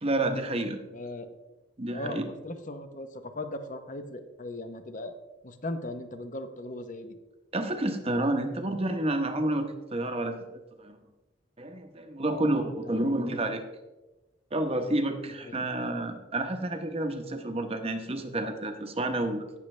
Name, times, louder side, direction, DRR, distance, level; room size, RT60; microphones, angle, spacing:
voice 1, 0.0-0.8 1.8-2.2 7.5-10.4 10.8-11.0 11.6-13.6 14.5-19.6, right 1 dB, 30° right, 6 dB, 0.9 m, -29 dB
voice 2, 0.9-1.3 1.9-5.2 5.4-7.2 12.3-12.5 12.8-13.2 15.4-15.7, left 1 dB, 40° left, 8 dB, 0.9 m, -38 dB
17.0 x 6.5 x 3.3 m, 1.1 s
head